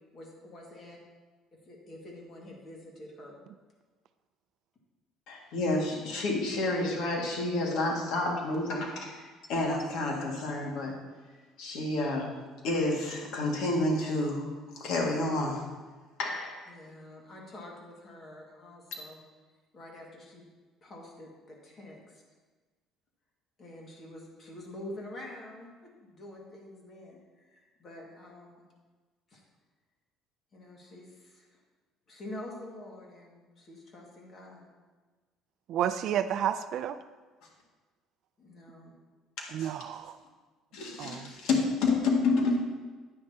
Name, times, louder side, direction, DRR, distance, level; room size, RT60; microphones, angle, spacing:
voice 1, 0.1-1.0 1.6-3.4 16.7-19.2 19.7-20.5 20.8-22.2 23.6-28.6 29.3-29.4 30.5-31.6 32.1-34.7 38.4-38.9, left 1 dB, 30° left, -1 dB, 2.0 m, -47 dB
voice 2, 5.3-11.0 11.6-12.3 12.6-15.6 16.2-16.7 39.4-39.7 40.7-42.6, left 2 dB, 70° left, -1 dB, 2.0 m, -29 dB
voice 3, 35.7-37.0 39.5-40.2 41.0-41.3, right 10 dB, 50° right, 11 dB, 0.4 m, -31 dB
9.8 x 9.6 x 2.9 m, 1.3 s
cardioid pair, 155°, 0 cm